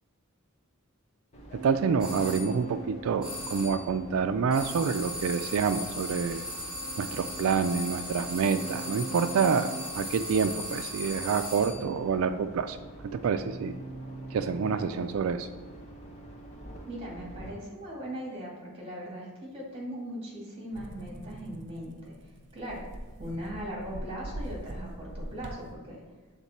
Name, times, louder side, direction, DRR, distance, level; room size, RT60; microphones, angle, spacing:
sound 1, 1.3-17.5, right 2 dB, 30° left, 0.9 m, -43 dB
voice 1, 1.6-6.4 7.0-12.8 13.1-13.7 14.3-15.5, right 6 dB, 75° right, 8 dB, 0.3 m, -27 dB
sound 2, 2.0-2.5 3.2-3.9 4.5-11.9, left 1 dB, 5° right, 1.9 m, -38 dB
voice 2, 16.9-22.1 22.5-22.8 23.2-26.0, equal, 25° right, -3 dB, 1.9 m, -39 dB
sound 3, 20.7-25.7, right 1 dB, 60° right, 0.7 m, -42 dB
7.2 x 3.6 x 4.1 m, 1.4 s
head